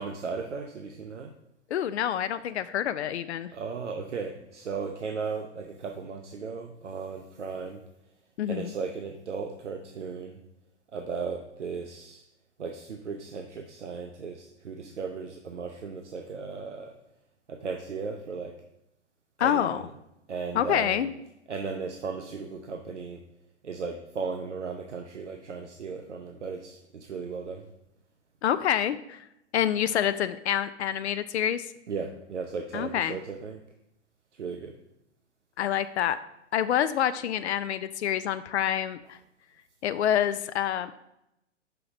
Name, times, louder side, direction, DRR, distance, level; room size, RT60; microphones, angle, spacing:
voice 1, 0.0-1.3 3.5-7.8 8.5-10.4 10.9-12.2 12.6-16.9 17.5-18.5 19.4-19.8 20.3-21.0 21.5-23.2 23.6-27.7 31.9-33.6 34.4-34.7, right 5 dB, 75° right, 4 dB, 0.8 m, -36 dB
voice 2, 1.7-3.5 8.4-8.7 19.4-19.8 20.5-21.1 28.4-29.2 29.5-31.6 32.7-33.2 35.6-36.2 36.5-39.2 39.8-40.9, left 10 dB, 65° left, 12 dB, 0.5 m, -27 dB
5.7 x 5.6 x 5.0 m, 0.85 s
figure-of-eight pair, 105°, 36 cm